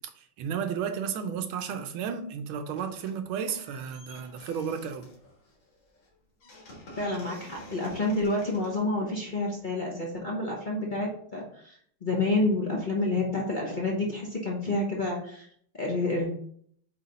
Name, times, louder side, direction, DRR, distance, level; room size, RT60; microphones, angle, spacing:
voice 1, 0.2-5.1, right 7 dB, 85° right, 1.5 m, -33 dB
sound 1, 2.7-3.2 3.5-9.7, left 1 dB, 65° left, 2.4 m, -51 dB
voice 2, 7.0-11.8 12.0-15.5 15.8-16.3, left 2 dB, 35° left, 0.8 m, -29 dB
7.6 x 3.2 x 4.1 m
omnidirectional pair, 2.2 m